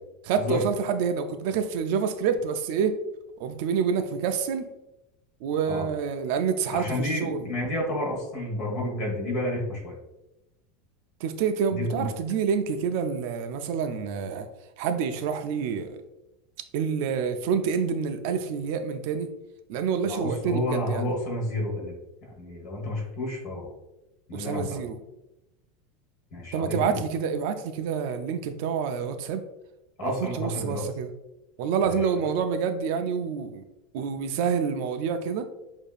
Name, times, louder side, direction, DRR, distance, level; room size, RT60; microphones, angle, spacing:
voice 1, 0.2-3.0 3.4-4.7 5.4-7.5 11.2-14.5 14.8-16.0 16.7-19.3 19.7-21.1 24.3-25.0 26.5-29.4 30.0-31.1 31.6-33.6 33.9-35.4, right 6 dB, 55° right, 8 dB, 0.3 m, -27 dB
voice 2, 6.7-9.9 11.7-12.1 20.0-21.9 22.4-23.7 24.3-24.8 26.3-27.0 30.0-30.9 31.8-32.0, left 1 dB, 40° left, -1 dB, 1.4 m, -30 dB
6.5 x 2.7 x 2.4 m, 0.94 s
supercardioid pair, 170°, 0 cm